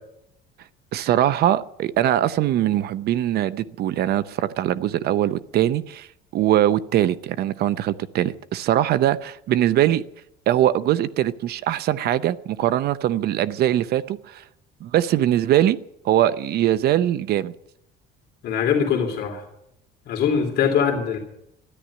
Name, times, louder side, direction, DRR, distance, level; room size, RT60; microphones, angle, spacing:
voice 1, 0.9-6.1 6.3-10.0 10.5-14.4 14.8-15.8 16.0-17.5, right 12 dB, 50° right, 15 dB, 0.6 m, -21 dB
voice 2, 18.4-19.4 20.1-21.2, left 7 dB, 50° left, 2 dB, 2.9 m, -22 dB
13.5 x 11.0 x 10.0 m, 0.78 s
cardioid pair, 155°, 21 cm